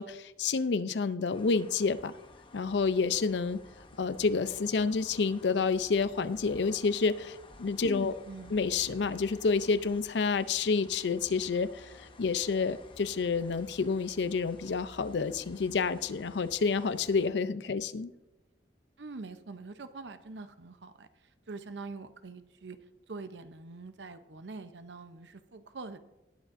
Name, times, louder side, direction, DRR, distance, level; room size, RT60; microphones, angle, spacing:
voice 1, 0.0-2.1 2.5-3.6 4.0-8.1 8.5-18.1, left 4 dB, 80° left, 14 dB, 0.5 m, -29 dB
sound 1, 1.3-17.3, left 2 dB, 30° left, 0.9 m, -54 dB
voice 2, 7.9-8.5 19.0-22.8 23.1-26.0, right 3 dB, 90° right, 10 dB, 0.7 m, -44 dB
19.0 x 7.4 x 2.6 m, 0.97 s
head